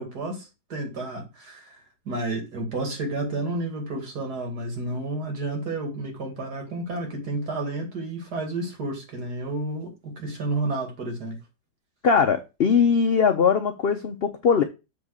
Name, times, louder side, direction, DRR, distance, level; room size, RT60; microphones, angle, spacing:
voice 1, 0.0-1.8 2.1-11.4, right 2 dB, 70° right, 2.8 m, -31 dB
voice 2, 12.0-14.6, left 6 dB, 60° left, 0.6 m, -20 dB
7.4 x 3.6 x 6.4 m
omnidirectional pair, 1.8 m